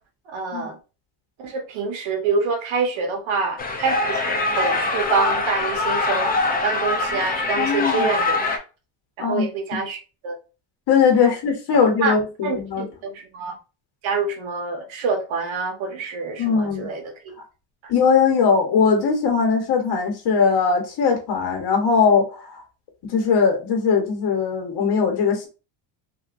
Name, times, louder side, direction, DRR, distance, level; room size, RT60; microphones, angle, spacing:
voice 1, 0.3-0.8 1.4-4.2 4.5-6.3 6.6-8.4 9.2-10.0 10.2-10.4 12.0-12.1 12.4-13.6 14.0-17.0, right 4 dB, 65° right, 1.2 m, -26 dB
sound 1, 3.6-8.6, left 3 dB, 20° left, 0.4 m, -23 dB
voice 2, 7.6-8.1 9.2-9.8 10.9-12.8 16.4-16.9 17.9-22.6 23.1-25.5, left 5 dB, 50° left, 1.1 m, -20 dB
3.4 x 2.6 x 2.4 m
cardioid pair, 130°, 50 cm